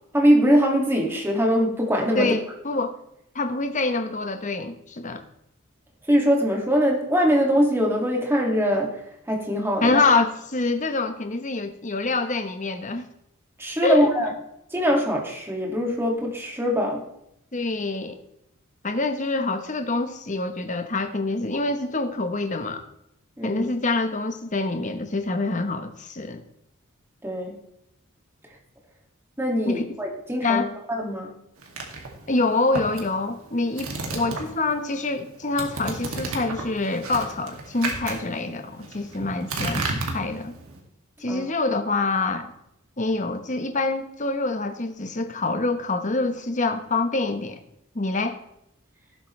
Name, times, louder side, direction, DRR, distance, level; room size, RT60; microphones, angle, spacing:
voice 1, 0.1-2.4 6.1-9.0 9.3-10.0 13.6-14.3 14.7-17.0 23.4-23.6 27.2-27.6 29.4-31.3 41.3-41.4, equal, 10° right, 0 dB, 2.2 m, -22 dB
voice 2, 2.1-3.0 3.3-5.2 9.8-13.0 13.8-14.1 17.5-18.2 18.8-22.8 23.4-26.4 29.7-30.0 30.4-30.7 32.3-40.5 41.2-42.5 43.0-47.6 47.9-48.4, left 3 dB, 35° left, 8 dB, 1.0 m, -26 dB
sound 1, 31.6-34.8 35.0-40.8, right 3 dB, 75° right, 2.3 m, -33 dB
18.0 x 7.7 x 3.3 m, 0.80 s
head